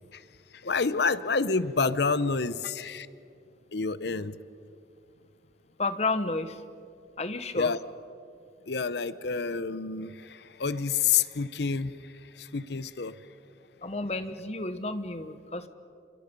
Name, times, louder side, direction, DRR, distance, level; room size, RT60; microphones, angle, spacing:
voice 1, 0.6-3.1 3.7-4.4 7.5-7.8 8.7-13.2, left 5 dB, 65° left, 15 dB, 0.7 m, -28 dB
voice 2, 5.8-6.6 7.2-7.7 13.8-15.7, left 2 dB, 35° left, 10 dB, 1.1 m, -31 dB
28.5 x 26.5 x 5.3 m, 2.5 s
head